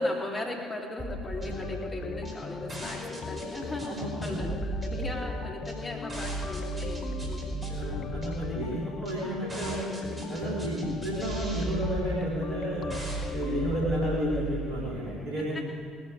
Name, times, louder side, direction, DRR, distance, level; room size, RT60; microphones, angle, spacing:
voice 1, 0.0-4.5 4.8-7.6, left 1 dB, 25° left, -2 dB, 3.3 m, -36 dB
sound 1, 1.0-14.6, right 2 dB, 25° right, 4.5 m, -37 dB
sound 2, 1.4-14.2, left 6 dB, 50° left, 0.6 m, -39 dB
voice 2, 3.8-4.4 7.7-12.9 13.3-15.6, equal, 55° right, -7 dB, 3.5 m, -32 dB
19.0 x 14.5 x 5.0 m, 2.1 s
figure-of-eight pair, 50°, 0 cm